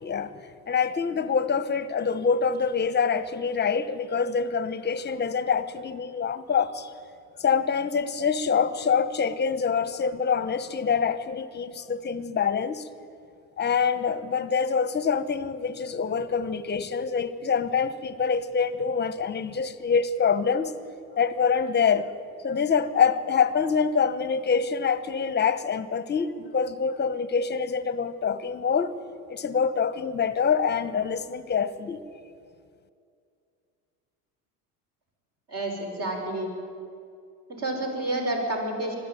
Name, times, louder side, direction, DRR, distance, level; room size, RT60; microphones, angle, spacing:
voice 1, 0.0-0.3 0.7-6.9 7.4-12.9 13.6-20.7 21.2-22.1 22.4-28.9 29.3-32.0, left 6 dB, 25° left, 14 dB, 1.1 m, -25 dB
voice 2, 35.5-36.5 37.5-39.0, right 1 dB, 40° right, 1 dB, 5.8 m, -29 dB
21.5 x 14.0 x 9.1 m, 2.4 s
supercardioid pair, 105°, 38 cm